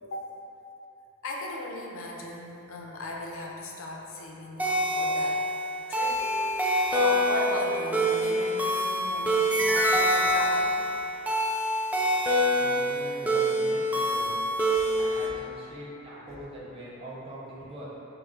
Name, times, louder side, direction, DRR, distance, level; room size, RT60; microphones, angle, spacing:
voice 1, 1.2-5.4 5.9-6.2 6.5-11.0 14.7-14.9 15.2-15.4 16.3-16.4, left 2 dB, 75° left, -1 dB, 0.5 m, -37 dB
sound 1, 4.6-15.3, equal, 10° right, 0.3 m, -26 dB
sound 2, 5.3-5.4 6.2-14.2, equal, 65° right, 0.5 m, -44 dB
voice 2, 12.5-14.3 14.9-17.9, right 1 dB, 25° right, -8 dB, 0.7 m, -43 dB
5.5 x 2.0 x 3.6 m, 2.9 s
head